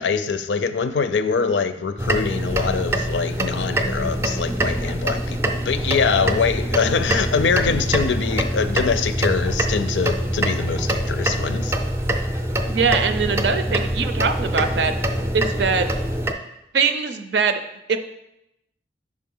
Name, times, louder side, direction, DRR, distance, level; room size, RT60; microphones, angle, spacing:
voice 1, 0.0-11.7, left 5 dB, 85° left, 11 dB, 0.5 m, -23 dB
sound 1, 2.0-16.3, right 1 dB, 15° right, 0.4 m, -24 dB
voice 2, 12.7-14.9 15.3-15.9 16.7-17.6 17.9-18.0, right 5 dB, 70° right, 9 dB, 0.5 m, -22 dB
5.1 x 4.8 x 5.4 m, 0.86 s
head